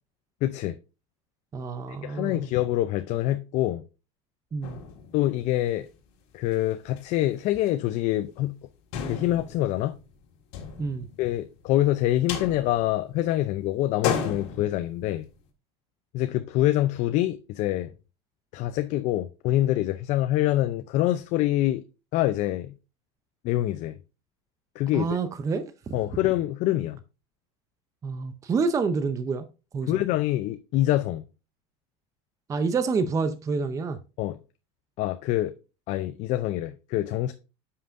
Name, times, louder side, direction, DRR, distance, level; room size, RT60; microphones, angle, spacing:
voice 1, 0.4-0.8 1.9-3.8 5.1-5.9 6.3-8.6 9.0-10.0 11.2-15.3 16.1-17.9 18.5-21.8 22.1-22.8 23.4-24.0 24.8-25.2 25.9-27.0 29.8-31.3 34.2-34.4 35.0-35.5 35.9-37.3, left 14 dB, 55° left, 0.5 m, -25 dB
voice 2, 1.5-2.5 4.5-4.8 10.8-11.1 24.9-25.6 28.0-29.4 29.7-30.0 32.5-34.0, right 4 dB, 20° right, 0.6 m, -28 dB
sound 1, 4.6-6.0 6.5-6.6 6.8-7.0 7.4-7.9 8.2-8.3 8.9-11.7 12.0-13.4 13.8-15.5, left 7 dB, 70° left, 1.7 m, -35 dB
9.5 x 5.7 x 2.5 m
supercardioid pair, 130°, 15 cm